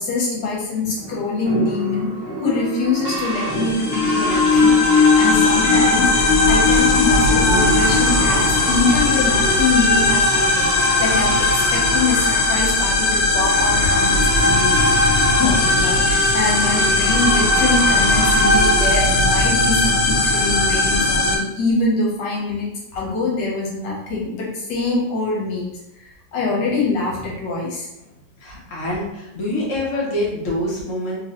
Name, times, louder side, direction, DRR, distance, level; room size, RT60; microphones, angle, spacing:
voice 1, 0.0-2.1 2.4-27.9, left 3 dB, 75° left, -4 dB, 1.6 m, -24 dB
sound 1, 0.9-6.0 7.0-9.5, right 1 dB, 15° left, 1.1 m, -30 dB
sound 2, 1.7-18.8, right 1 dB, 85° right, 1.4 m, -28 dB
sound 3, 3.3-21.4, left 2 dB, 90° left, 1.3 m, -17 dB
voice 2, 28.4-31.2, left 1 dB, 55° left, -5 dB, 1.0 m, -25 dB
3.1 x 2.8 x 2.5 m, 0.86 s
omnidirectional pair, 1.9 m